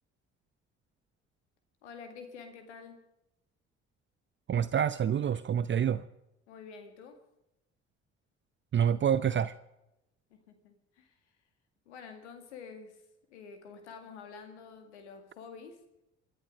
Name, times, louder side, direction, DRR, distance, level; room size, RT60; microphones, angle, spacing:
voice 1, 1.8-3.0 6.5-7.2 10.5-11.1 11.9-13.0 13.3-15.8, left 5 dB, 80° left, 2.1 m, -48 dB
voice 2, 4.5-6.0 8.7-9.5, right 8 dB, 35° right, 0.7 m, -27 dB
27.5 x 10.0 x 5.1 m
figure-of-eight pair, 50°, 34 cm